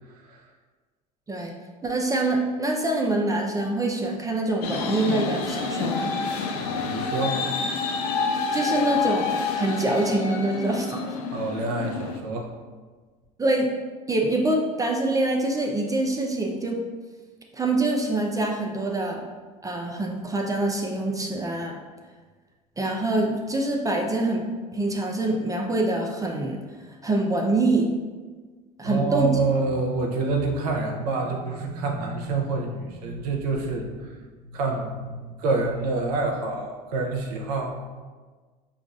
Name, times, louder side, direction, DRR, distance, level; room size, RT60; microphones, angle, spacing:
voice 1, 1.8-6.1 8.5-11.0 13.4-13.7 14.1-16.8 17.5-19.2 19.6-21.7 22.8-24.5 24.7-26.6 26.9-27.9 28.8-29.4, right 2 dB, 15° right, 0 dB, 0.5 m, -25 dB
sound 1, 4.6-12.2, left 5 dB, 85° left, 0.4 m, -28 dB
voice 2, 6.5-7.4 11.3-12.5 28.8-34.1 34.4-37.7, right 3 dB, 85° right, 1 dB, 0.6 m, -27 dB
5.0 x 2.4 x 2.3 m, 1.4 s
hypercardioid pair, 75°, 20 cm